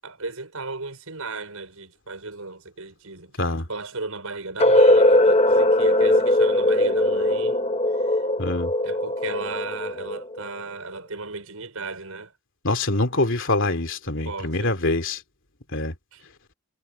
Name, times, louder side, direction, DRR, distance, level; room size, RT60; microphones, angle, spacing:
voice 1, 0.0-7.6 7.9-8.2 8.8-12.3 14.2-14.8 16.1-16.3, right 3 dB, 85° right, 5.8 m, -35 dB
sound 1, 4.6-10.5, left 1 dB, 30° left, 1.3 m, -19 dB
voice 2, 8.4-8.7 12.6-15.2 15.7-15.9, left 2 dB, 60° left, 2.9 m, -24 dB
head